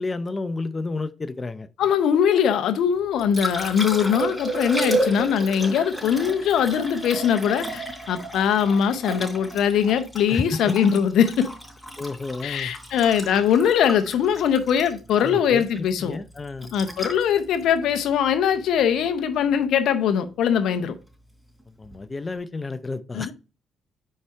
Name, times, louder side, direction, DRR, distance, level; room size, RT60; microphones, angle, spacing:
voice 1, 0.0-1.7 10.3-10.7 12.0-12.7 15.2-16.7 21.8-23.3, left 3 dB, 30° left, 0.6 m, -31 dB
voice 2, 1.8-7.8 8.1-11.5 12.4-16.2 16.7-20.9 23.1-23.3, left 8 dB, 75° left, 0.7 m, -21 dB
Liquid, 2.9-19.0 21.8-22.0, right 1 dB, 5° left, 3.4 m, -32 dB
5.5 x 4.9 x 4.4 m
supercardioid pair, 70°, 0 cm